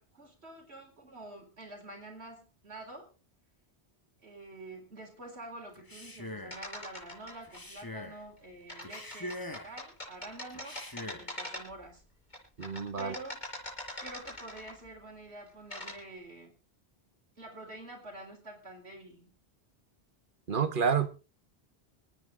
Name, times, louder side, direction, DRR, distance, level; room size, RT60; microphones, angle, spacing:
voice 1, 0.0-3.1 4.2-12.0 13.0-13.4 14.0-16.5 17.4-19.3, right 2 dB, 75° right, 4.4 m, -47 dB
Male speech man speaking, 5.7-6.6 7.4-8.2 8.8-9.8 10.5-11.3, left 1 dB, 20° left, 1.5 m, -43 dB
sound 1, 6.5-7.6 8.7-11.9 12.3-14.9 15.5-16.0, left 1 dB, 45° left, 5.8 m, -43 dB
voice 2, 12.6-13.1 20.5-21.1, right 6 dB, 50° right, 1.4 m, -29 dB
26.5 x 9.1 x 3.7 m
omnidirectional pair, 1.1 m